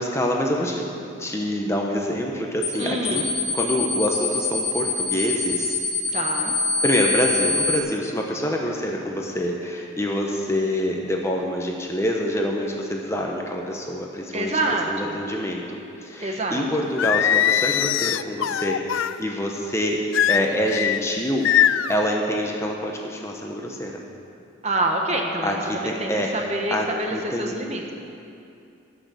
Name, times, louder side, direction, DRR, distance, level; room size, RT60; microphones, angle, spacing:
voice 1, 0.0-3.2 3.5-5.7 6.8-14.5 14.9-21.5 21.9-24.0 25.4-26.4 26.7-26.9 27.1-27.5, equal, 15° left, 0 dB, 0.9 m, -26 dB
sound 1, 2.6-2.8 3.1-7.8, left 3 dB, 40° left, 2.3 m, -24 dB
voice 2, 2.8-3.3 6.1-6.5 14.3-15.2 16.2-16.9 24.6-27.9, right 2 dB, 35° right, 1 dB, 1.1 m, -27 dB
Singing, 17.0-19.2 20.1-21.0 21.4-22.0, left 10 dB, 75° left, 0.3 m, -21 dB
17.5 x 6.3 x 6.8 m, 2.6 s
head